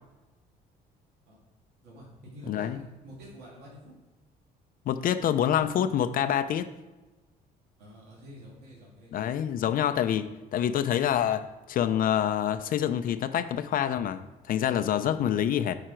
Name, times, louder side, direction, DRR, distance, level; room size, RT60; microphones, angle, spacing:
voice 1, 1.8-3.9 7.8-9.3 15.0-15.3, equal, 75° right, -5 dB, 2.8 m, -48 dB
voice 2, 2.5-2.8 4.9-6.7 9.1-15.8, left 10 dB, 60° left, 9 dB, 0.5 m, -27 dB
9.5 x 5.0 x 4.5 m, 1.1 s
cardioid pair, 110°, 17 cm